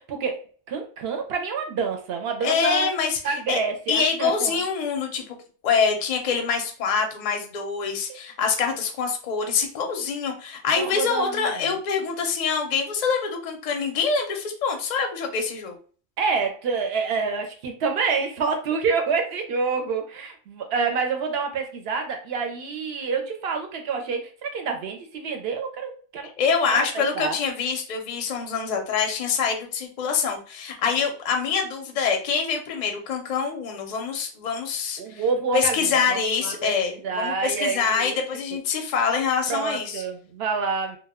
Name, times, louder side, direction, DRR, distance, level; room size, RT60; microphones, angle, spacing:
voice 1, 0.0-2.9 3.2-4.6 8.1-8.2 10.8-11.7 16.2-26.3 26.7-27.4 35.0-36.7 37.0-38.2 39.5-41.0, right 5 dB, 65° right, 4 dB, 0.7 m, -27 dB
voice 2, 2.4-3.6 3.9-5.2 5.6-15.7 26.4-35.2 35.5-40.0, left 6 dB, 50° left, 4 dB, 0.5 m, -25 dB
2.2 x 2.1 x 3.4 m, 0.41 s
omnidirectional pair, 1.2 m